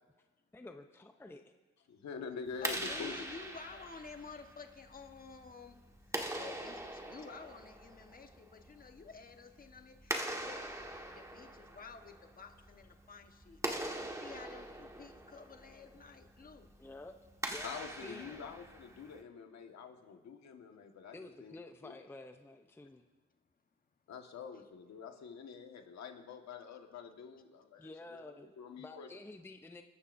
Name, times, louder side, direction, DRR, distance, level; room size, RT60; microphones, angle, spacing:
voice 1, 0.5-1.4 16.8-17.1 17.5-18.4 21.1-23.1 27.8-29.8, left 2 dB, 10° left, 0.7 m, -50 dB
voice 2, 1.9-3.2 17.6-21.6 21.8-21.9 24.1-29.1, left 5 dB, 65° left, 1.6 m, -46 dB
Clapping, 2.5-19.2, right 1 dB, 10° right, 1.5 m, -43 dB
voice 3, 2.6-10.8 11.1-13.6 14.0-16.7 24.5-24.6 27.8-27.9, left 4 dB, 30° left, 1.3 m, -51 dB
28.5 x 12.0 x 2.6 m
cardioid pair, 90°, 30 cm